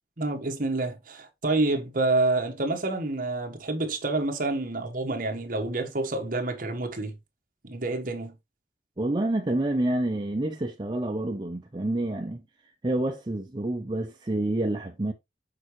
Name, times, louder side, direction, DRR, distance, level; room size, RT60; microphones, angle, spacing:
voice 1, 0.2-7.2 7.6-8.4, right 2 dB, 50° right, 1.3 m, -28 dB
voice 2, 9.0-12.4 12.8-15.1, right 1 dB, 25° right, 0.5 m, -28 dB
6.6 x 4.8 x 3.1 m
head